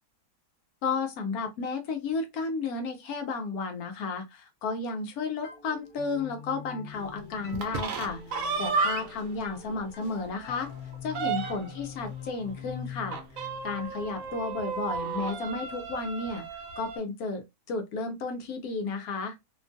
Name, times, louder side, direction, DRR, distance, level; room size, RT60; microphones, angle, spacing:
voice 1, 0.8-10.7 11.0-13.2 13.6-16.4 16.8-17.4 17.7-19.3, left 4 dB, 75° left, 1.1 m, -33 dB
sound 1, 5.4-15.0, left 7 dB, 50° left, 0.6 m, -44 dB
sound 2, 7.5-9.3 9.7-9.8 10.2-10.3 10.6-11.8 13.1-17.0, right 5 dB, 70° right, 0.9 m, -33 dB
2.9 x 2.3 x 2.5 m
omnidirectional pair, 1.6 m